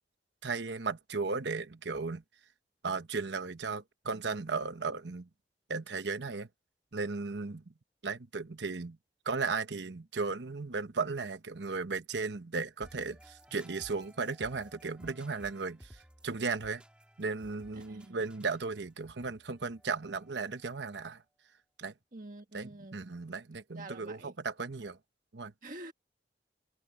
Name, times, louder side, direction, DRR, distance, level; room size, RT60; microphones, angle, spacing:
voice 1, 0.4-2.2 2.8-5.3 5.7-6.5 6.9-7.6 8.0-9.0 9.2-16.8 17.2-21.2 21.8-21.9 22.5-25.0 25.3-25.5, right 4 dB, 85° right, 1.0 m, -36 dB
sound 1, 12.8-20.6, equal, 5° right, 3.1 m, -57 dB
voice 2, 17.9-18.2 22.1-23.0 23.7-24.3 25.6-25.9, right 2 dB, 45° right, 1.7 m, -46 dB
head